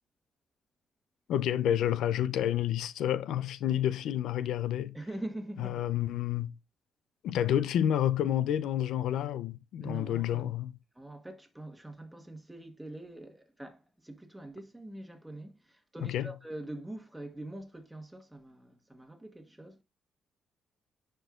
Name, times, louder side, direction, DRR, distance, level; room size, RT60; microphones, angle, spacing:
voice 1, 1.3-5.0 5.6-6.5 7.2-10.7 16.0-16.3, left 11 dB, 80° left, 0.4 m, -29 dB
voice 2, 4.9-5.8 9.8-10.5 10.9-19.8, right 1 dB, 10° right, 1.3 m, -44 dB
9.8 x 4.5 x 2.4 m
cardioid pair, 90°, 0 cm